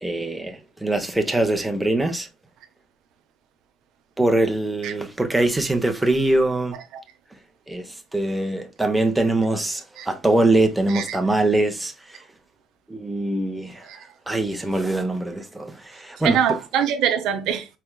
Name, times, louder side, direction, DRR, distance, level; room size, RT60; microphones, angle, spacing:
voice 1, 0.0-2.3 4.2-6.8 7.7-12.2 12.9-13.9 14.3-16.6, right 2 dB, 5° right, 0.8 m, -23 dB
voice 2, 16.2-17.7, right 9 dB, 70° right, 0.7 m, -23 dB
4.6 x 3.4 x 2.2 m
cardioid pair, 110°, 0 cm